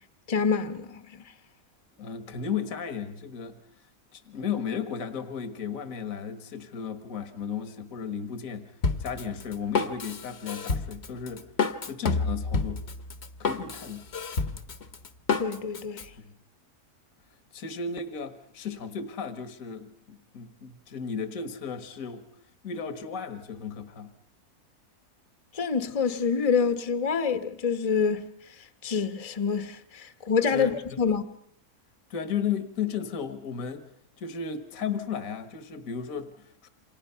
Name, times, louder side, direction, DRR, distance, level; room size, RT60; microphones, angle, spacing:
voice 1, 0.3-1.2 15.4-16.1 25.5-28.3 28.8-31.2, left 6 dB, 25° left, 1.1 m, -27 dB
voice 2, 2.0-3.6 4.1-8.7 9.0-11.5 11.8-12.8 13.4-14.0 17.5-22.2 22.6-24.1 30.5-31.0 32.1-33.9 34.2-36.7, left 7 dB, 65° left, 1.8 m, -34 dB
Drum kit, 8.8-16.1, left 4 dB, 45° left, 1.3 m, -29 dB
29.0 x 26.0 x 5.6 m
omnidirectional pair, 1.6 m